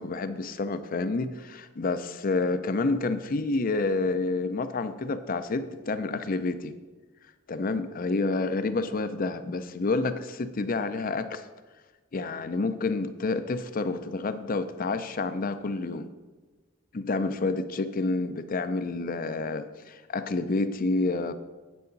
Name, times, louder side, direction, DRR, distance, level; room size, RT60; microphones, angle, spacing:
voice 1, 0.0-6.7 7.5-11.4 12.1-16.1 16.9-21.3, left 3 dB, 45° left, 11 dB, 0.5 m, -29 dB
9.4 x 8.2 x 3.9 m, 1.3 s
head